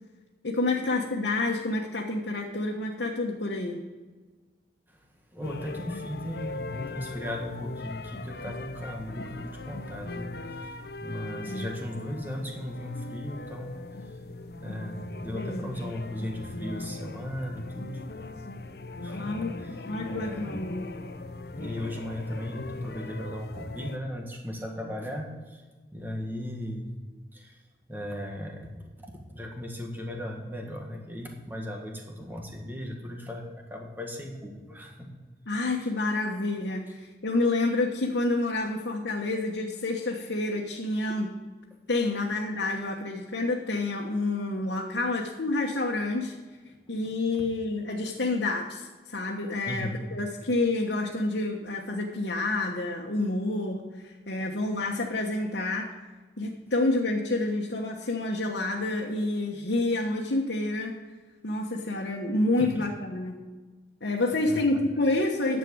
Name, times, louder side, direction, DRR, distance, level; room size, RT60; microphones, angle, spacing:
voice 1, 0.4-3.8 11.5-11.7 15.3-15.9 19.2-19.5 19.8-20.9 35.5-41.3 41.9-46.3 46.9-55.9 56.4-61.0 61.4-63.4 64.0-65.6, left 2 dB, 85° left, -2 dB, 1.2 m, -28 dB
voice 2, 5.3-10.7 11.0-13.7 14.0-14.2 14.6-18.0 19.0-19.8 20.1-20.6 21.5-25.6 25.9-26.9 27.3-27.6 27.9-35.1 35.8-35.9 47.3-47.4 49.6-50.0 62.6-62.7 64.5-64.6, left 1 dB, 10° right, 1 dB, 1.6 m, -37 dB
sound 1, 5.4-24.0, left 2 dB, 65° left, 0.7 m, -39 dB
10.5 x 7.5 x 6.3 m, 1.3 s
head